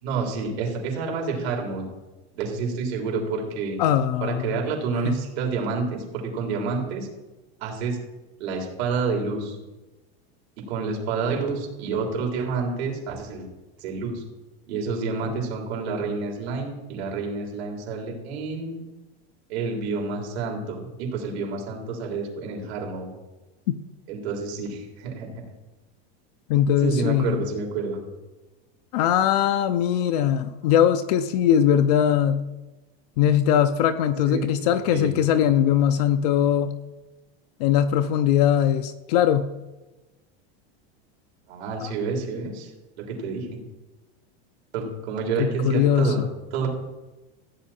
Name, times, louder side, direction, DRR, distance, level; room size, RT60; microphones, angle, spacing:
voice 1, 0.0-1.9 2.4-3.8 4.2-7.1 7.6-8.0 8.4-9.6 10.6-13.5 13.8-14.2 14.7-18.8 19.5-23.1 24.1-25.4 26.8-28.0 34.3-35.1 41.4-42.7 43.0-43.6 44.7-46.7, right 4 dB, 80° right, 0 dB, 3.8 m, -29 dB
voice 2, 3.8-4.6 5.1-5.2 23.7-23.8 26.5-27.4 28.9-32.5 33.2-36.7 37.6-39.5 41.8-41.9 45.4-46.1, left 9 dB, 40° left, 10 dB, 0.5 m, -21 dB
15.0 x 8.7 x 4.3 m, 1.1 s
supercardioid pair, 180°, 31 cm